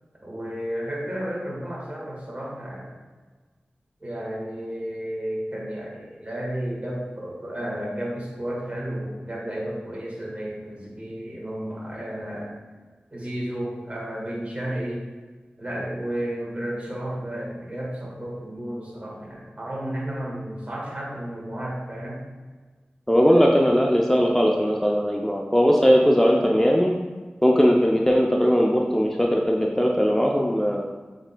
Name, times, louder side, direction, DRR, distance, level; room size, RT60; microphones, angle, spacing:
voice 1, 0.2-3.0 4.0-12.6 13.1-15.1 15.6-22.2, right 1 dB, 40° right, -3 dB, 1.4 m, -32 dB
voice 2, 23.1-26.9 27.4-30.8, equal, 10° left, 0 dB, 0.4 m, -19 dB
6.2 x 3.4 x 2.2 m, 1.4 s
wide cardioid pair, 45°, 4 cm